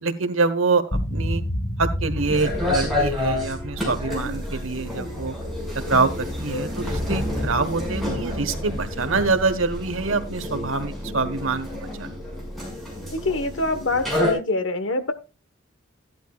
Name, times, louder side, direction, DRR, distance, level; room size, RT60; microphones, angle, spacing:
voice 1, 0.0-1.4 1.8-5.3 5.9-12.1, right 3 dB, 80° right, 10 dB, 1.3 m, -25 dB
sound 1, 0.9-6.3, equal, 35° left, 1.8 m, -31 dB
sound 2, 2.1-14.3, left 1 dB, ahead, 5.7 m, -29 dB
voice 2, 13.1-15.1, left 2 dB, 65° left, 10 dB, 1.2 m, -25 dB
15.0 x 11.5 x 2.4 m, 0.30 s
head